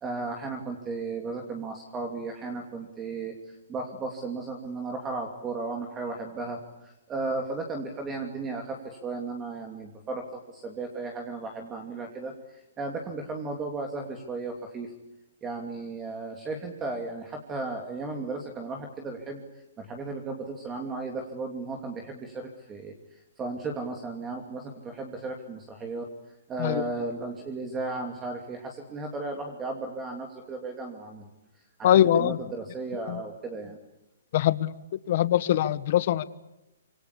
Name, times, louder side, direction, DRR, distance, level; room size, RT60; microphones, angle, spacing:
voice 1, 0.0-14.9 15.4-19.4 19.8-26.1 26.5-31.3 32.1-33.8, right 3 dB, 15° right, 3 dB, 2.9 m, -35 dB
voice 2, 31.8-32.4 33.1-33.2 34.3-34.7 35.1-36.2, left 11 dB, 45° left, 15 dB, 1.5 m, -22 dB
26.5 x 25.0 x 8.5 m, 0.94 s
hypercardioid pair, 160°, 0 cm